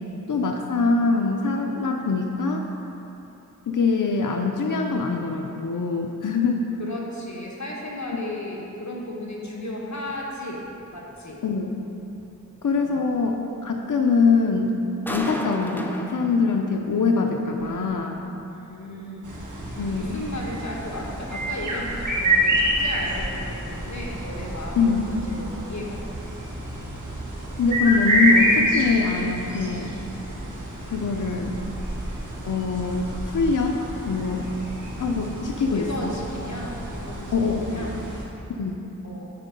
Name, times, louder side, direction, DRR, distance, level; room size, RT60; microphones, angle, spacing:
voice 1, 0.3-2.6 3.7-6.6 8.1-8.2 11.4-11.8 12.6-14.8 15.1-18.2 19.8-20.2 24.8-25.0 27.6-29.9 30.9-31.5 32.4-34.5 35.0-36.1 37.3-38.0 38.6-38.8, left 4 dB, 85° left, 1 dB, 0.5 m, -23 dB
voice 2, 6.8-10.7 10.9-11.4 12.8-13.0 18.5-19.4 20.0-26.2 35.6-38.0 39.0-39.3, left 1 dB, 65° left, -3 dB, 1.3 m, -35 dB
sound 1, 10.1-10.2 10.6-10.8 11.1-11.2 11.6-11.7 12.2-12.3 12.6-12.8 13.2-13.8 14.3-14.5 14.8-14.9 15.1-17.0 17.3-18.6 18.9-19.0 19.4-19.6 19.9-20.6 20.9-21.2 21.5-21.6 22.0-22.1, equal, 5° left, 0.5 m, -37 dB
sound 2, 19.2-38.2, right 1 dB, 80° right, 1.4 m, -28 dB
9.3 x 4.5 x 5.1 m, 3.0 s
wide cardioid pair, 60°, 30 cm